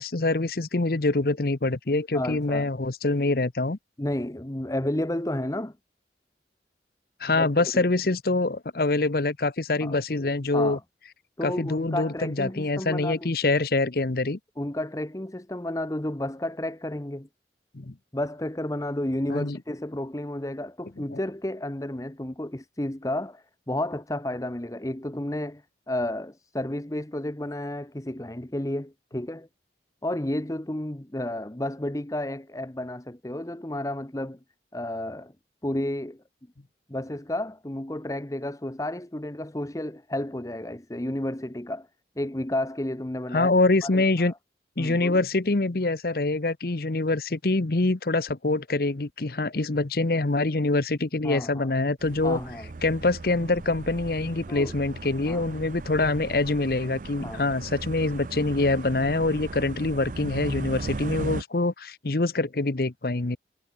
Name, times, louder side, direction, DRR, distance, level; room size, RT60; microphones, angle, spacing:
voice 1, 0.0-3.8 7.2-10.8 11.4-14.4 17.7-17.9 19.3-19.6 43.3-44.3 44.8-52.4 52.8-63.4, left 2 dB, 55° left, 0.9 m, -25 dB
voice 2, 2.1-2.7 4.0-5.7 7.3-7.9 9.8-10.0 10.5-10.8 11.4-13.3 14.6-17.3 18.1-29.5 30.0-34.4 34.7-35.3 35.6-36.2 36.9-41.9 42.2-43.5 43.8-44.4 44.8-45.2 51.2-51.7 52.2-52.7 54.5-54.7 55.3-55.4 57.2-57.4 60.6-60.7, left 1 dB, 20° left, 1.0 m, -32 dB
sound 1, 52.0-61.4, right 3 dB, 45° right, 0.5 m, -37 dB
head